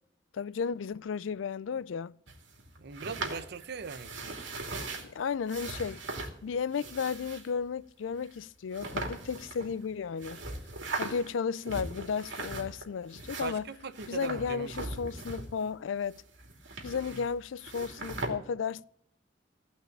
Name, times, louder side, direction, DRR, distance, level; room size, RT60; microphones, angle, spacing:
voice 1, 0.3-2.1 5.0-6.0 6.4-10.4 11.0-13.7 14.1-16.2 16.8-18.9, left 6 dB, 90° left, 0.4 m, -34 dB
sound 1, 2.3-5.1 5.5-6.3 6.7-7.5 8.2-8.3 8.7-9.9 10.2-11.3 11.6-12.8 13.1-15.7 16.0-17.3 17.6-18.3, right 2 dB, 80° right, 2.6 m, -39 dB
voice 2, 2.8-4.5 13.4-15.0 17.1-17.3, right 4 dB, 60° right, 0.8 m, -40 dB
16.0 x 5.6 x 8.6 m
head